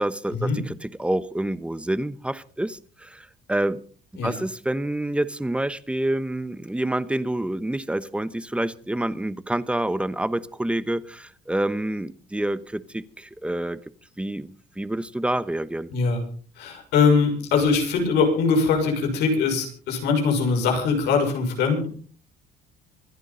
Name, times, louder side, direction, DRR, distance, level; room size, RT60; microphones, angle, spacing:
voice 1, 0.0-3.8 4.2-13.8 14.2-15.9, right 1 dB, 5° right, 15 dB, 1.0 m, -27 dB
voice 2, 16.6-21.9, left 5 dB, 85° left, 2 dB, 6.2 m, -22 dB
25.5 x 11.0 x 3.9 m, 0.43 s
cardioid pair, 110°, 17 cm